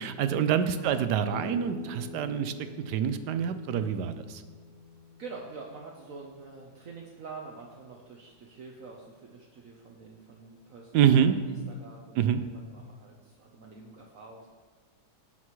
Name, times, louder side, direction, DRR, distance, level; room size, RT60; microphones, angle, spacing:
voice 1, 0.0-2.5 2.9-4.4 10.9-11.4 12.2-12.4, right 8 dB, 80° right, 10 dB, 1.2 m, -26 dB
voice 2, 0.8-1.1 5.2-14.5, right 4 dB, 60° right, 0 dB, 1.2 m, -46 dB
sound 1, 1.3-6.9, left 3 dB, 45° left, 0.7 m, -46 dB
17.0 x 5.9 x 3.1 m, 1.4 s
omnidirectional pair, 1.8 m